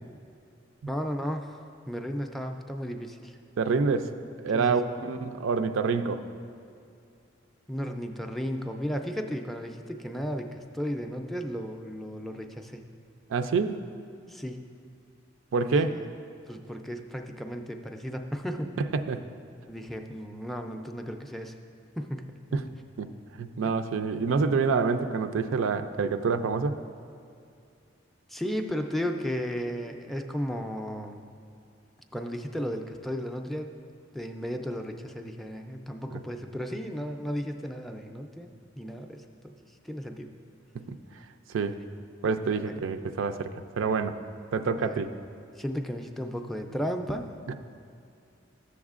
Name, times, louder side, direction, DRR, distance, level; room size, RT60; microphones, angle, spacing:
voice 1, 0.9-3.4 4.5-4.9 7.7-12.8 14.3-14.7 15.6-16.0 16.5-18.7 19.7-21.6 21.9-22.4 28.3-31.3 32.1-33.8 34.1-40.3 42.6-42.8 44.8-45.0 45.6-47.3, equal, ahead, 4 dB, 0.3 m, -34 dB
voice 2, 3.6-4.1 4.4-6.2 13.3-13.8 15.5-15.9 18.9-19.2 22.5-22.7 23.0-23.1 23.4-26.8 40.7-41.0 41.5-41.7 42.2-44.2 44.5-45.1, right 4 dB, 85° right, 9 dB, 0.4 m, -27 dB
13.0 x 7.1 x 2.4 m, 2.5 s
head